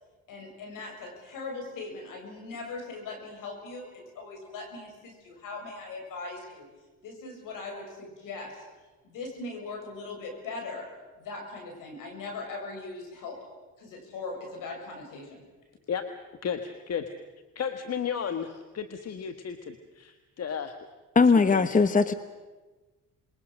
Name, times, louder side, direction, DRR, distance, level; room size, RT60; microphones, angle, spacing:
voice 1, 0.3-6.7 7.0-8.6 9.0-13.5 13.8-15.5, left 3 dB, 75° left, 3 dB, 6.8 m, -40 dB
voice 2, 16.4-17.1 17.6-20.8 21.5-21.7, left 7 dB, 50° left, 8 dB, 1.6 m, -33 dB
voice 3, 21.1-22.1, left 4 dB, 25° left, 12 dB, 1.0 m, -20 dB
27.5 x 22.0 x 6.5 m, 1.2 s
supercardioid pair, 75°, 32 cm